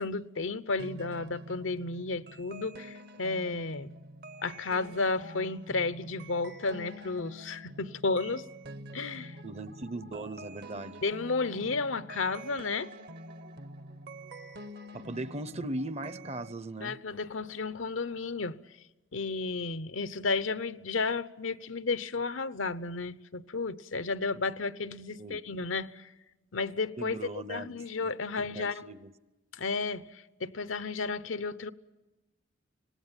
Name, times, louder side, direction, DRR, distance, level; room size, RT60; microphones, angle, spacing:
voice 1, 0.0-3.9 4.4-8.5 8.9-9.4 11.0-12.9 16.8-18.6 19.1-26.1 26.5-27.2 27.5-28.9 29.5-31.7, left 3 dB, 75° left, 0.9 m, -33 dB
sound 1, 0.8-16.5, right 1 dB, 55° right, 1.2 m, -46 dB
voice 2, 9.4-11.0 14.9-17.0 25.2-25.4 27.0-28.1 28.5-29.1, right 2 dB, 35° right, 0.8 m, -39 dB
25.5 x 18.5 x 9.0 m
head